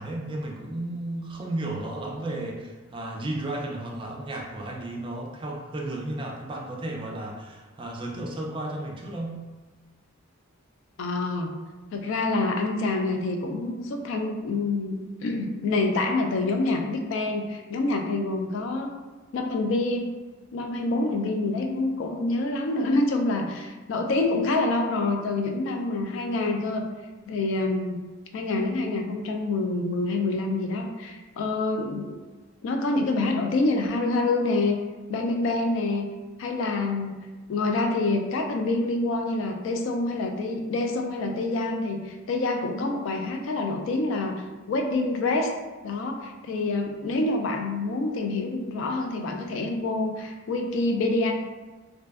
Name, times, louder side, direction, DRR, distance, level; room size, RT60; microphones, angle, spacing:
voice 1, 0.0-9.4, right 1 dB, 25° right, -1 dB, 0.3 m, -33 dB
voice 2, 11.0-11.5 11.9-19.0 19.3-20.1 20.5-26.9 27.3-28.0 28.3-32.2 32.6-34.8 35.1-36.1 36.4-37.1 37.5-45.5 45.8-51.3, left 2 dB, 65° left, 3 dB, 0.3 m, -27 dB
2.5 x 2.2 x 2.3 m, 1.2 s
head